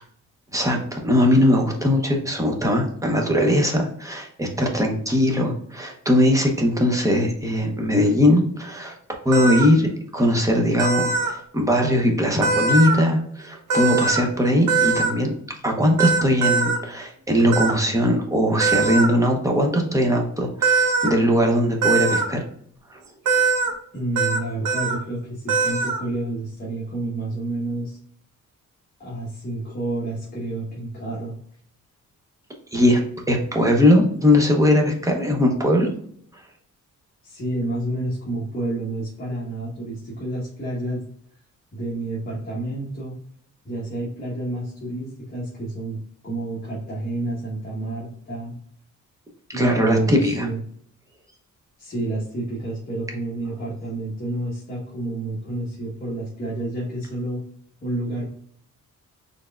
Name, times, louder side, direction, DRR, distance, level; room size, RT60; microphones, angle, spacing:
voice 1, 0.5-8.9 9.2-15.3 15.6-22.4 32.7-33.0 33.3-35.9 49.5-50.5, left 1 dB, 10° right, 1 dB, 0.7 m, -20 dB
sound 1, 9.3-9.7 10.8-11.3 12.4-13.0 13.7-14.2 14.7-15.1 16.0-16.8 17.5-17.7 18.6-19.1 20.6-21.1 21.8-22.3 23.3-23.7 24.2-24.4 24.6-25.0 25.5-26.0, right 4 dB, 90° right, 0.9 m, -21 dB
voice 2, 23.9-28.0 29.0-31.4 37.2-41.0 41.7-43.2 43.6-48.5 49.5-50.6 51.8-57.4 57.8-58.3, right 2 dB, 30° left, -6 dB, 1.1 m, -29 dB
4.5 x 3.4 x 2.3 m, 0.65 s
wide cardioid pair, 170°, 31 cm